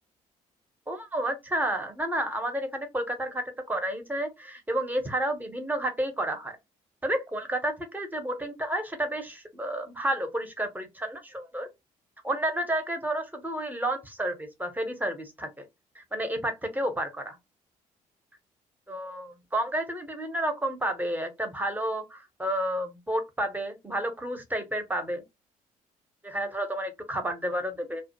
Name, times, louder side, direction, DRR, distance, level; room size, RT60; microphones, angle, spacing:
voice 1, 0.9-6.6 7.0-11.7 12.2-15.6 16.0-17.4 18.9-25.2 26.2-28.0, right 1 dB, 10° right, 0.8 m, -31 dB
2.3 x 2.2 x 2.8 m
figure-of-eight pair, 45°, 19 cm